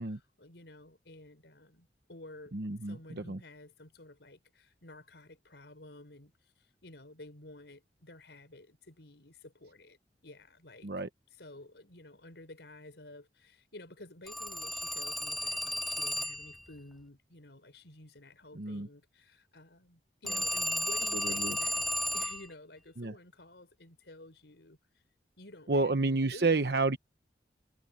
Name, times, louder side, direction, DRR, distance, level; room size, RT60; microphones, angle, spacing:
voice 1, 0.0-2.5 2.8-10.9 11.3-25.0 25.4-26.7, left 2 dB, 80° left, 4.7 m, -52 dB
voice 2, 2.5-3.4 10.8-11.1 18.5-18.9 20.3-20.4 21.2-21.6 23.0-23.1 25.7-27.0, right 3 dB, 65° right, 1.0 m, -30 dB
Telephone, 14.3-16.6 20.3-22.5, equal, ahead, 0.3 m, -33 dB
head